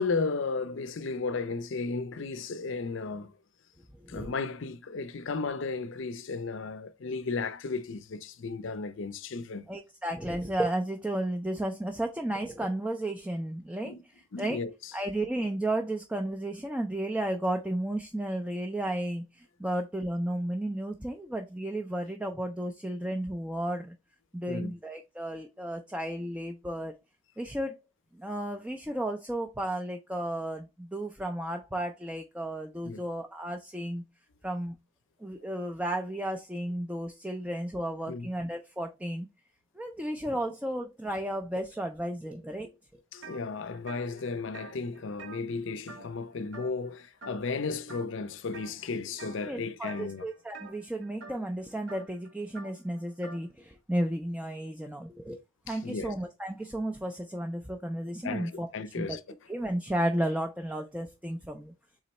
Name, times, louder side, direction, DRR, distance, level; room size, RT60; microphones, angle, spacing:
voice 1, 0.0-3.3 4.1-9.7 13.8-14.0 14.3-14.9 24.5-24.7 32.8-33.0 38.1-38.3 43.1-50.3 55.7-56.1 58.2-59.2, left 4 dB, 60° left, 0.5 m, -34 dB
voice 2, 4.0-4.3 9.7-13.9 14.4-14.6 14.9-23.9 24.3-27.0 27.4-27.8 28.2-34.0 34.4-34.8 35.2-39.3 39.8-42.7 49.4-55.4 55.7-58.7 59.0-59.2 59.5-61.7, right 1 dB, 5° right, 0.4 m, -33 dB
sound 1, 43.2-43.4 43.7-46.3 46.5-46.9 47.2-47.6 47.9-48.7 49.2-49.5 49.8-53.5, right 3 dB, 60° right, 0.8 m, -48 dB
3.8 x 3.0 x 4.2 m
head